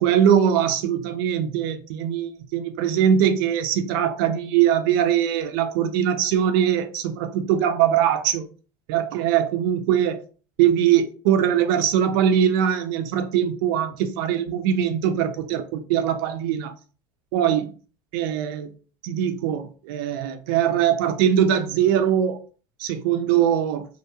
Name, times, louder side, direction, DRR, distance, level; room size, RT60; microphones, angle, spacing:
voice 1, 0.0-8.5 8.9-10.2 10.6-16.7 17.3-17.7 18.1-18.7 19.0-22.4 22.8-23.9, right 9 dB, 75° right, 0.4 m, -21 dB
2.8 x 2.5 x 2.2 m
supercardioid pair, 150°, 12 cm